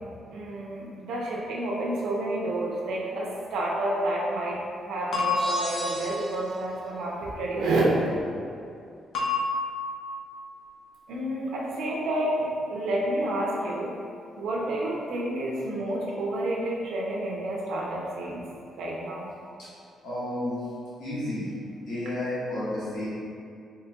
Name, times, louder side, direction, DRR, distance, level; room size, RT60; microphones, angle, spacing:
voice 1, 0.3-4.6 4.8-8.0 11.1-14.0 14.4-18.5 18.8-19.3, right 1 dB, 85° right, -4 dB, 0.5 m, -29 dB
sound 1, 5.1-6.4 9.1-10.4, left 3 dB, 65° left, 0.6 m, -29 dB
sound 2, 5.3-6.7, right 2 dB, 30° right, 0.5 m, -37 dB
voice 2, 20.0-20.5 21.0-21.5 21.9-23.1, left 1 dB, 85° left, -11 dB, 1.0 m, -31 dB
3.8 x 2.9 x 2.2 m, 2.4 s
cardioid pair, 130°, 0 cm